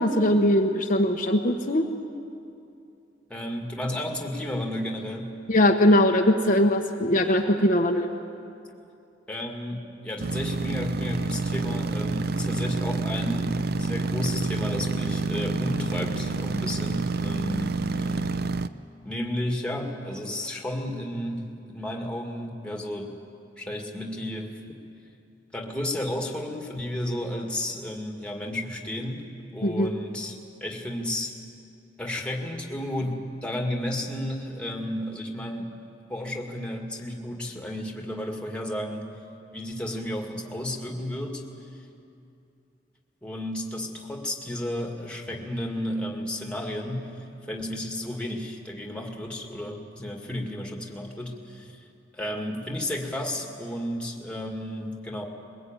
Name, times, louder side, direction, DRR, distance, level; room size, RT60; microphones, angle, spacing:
voice 1, 0.0-1.8 5.5-8.1 29.6-29.9, left 1 dB, 45° left, 2 dB, 1.1 m, -21 dB
voice 2, 3.3-5.3 9.3-18.3 19.0-23.2 23.6-24.5 25.5-29.2 29.5-30.4 30.6-31.3 32.0-35.8 36.1-39.1 39.5-41.4 43.2-51.8 52.1-55.2, left 1 dB, 5° left, 1 dB, 2.2 m, -32 dB
sound 1, 10.2-18.7, right 3 dB, 55° right, 0.6 m, -28 dB
22.0 x 21.0 x 9.0 m, 2.6 s
head